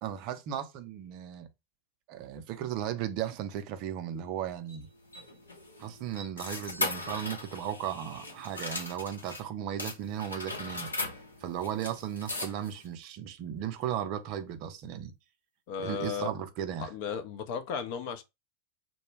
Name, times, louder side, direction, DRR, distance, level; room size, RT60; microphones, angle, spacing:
voice 1, 0.0-1.5 2.1-4.9 5.8-10.9 11.4-15.1 15.8-16.9, right 10 dB, 40° right, 0.4 m, -36 dB
sound 1, 4.7-9.4 9.8-12.9, left 2 dB, 80° left, 0.7 m, -38 dB
voice 2, 15.7-16.3 16.8-18.2, left 6 dB, 45° left, 0.5 m, -35 dB
2.1 x 2.0 x 3.1 m
figure-of-eight pair, 90°, 0 cm